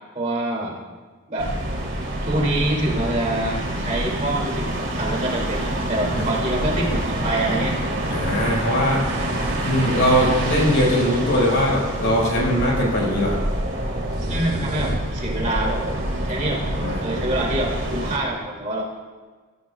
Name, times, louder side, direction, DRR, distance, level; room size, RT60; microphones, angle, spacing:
voice 1, 0.1-0.8 1.3-1.5 2.2-7.7 14.3-15.8 16.2-16.6 17.0-18.8, right 1 dB, 35° right, -3 dB, 2.5 m, -26 dB
sound 1, 1.4-18.2, right 1 dB, 55° right, 2.9 m, -26 dB
voice 2, 8.1-9.1 9.6-13.4 16.8-17.0, equal, 55° left, -3 dB, 4.9 m, -21 dB
sound 2, 8.8-15.4, right 1 dB, 90° right, 2.2 m, -37 dB
24.0 x 13.5 x 2.3 m, 1.4 s
head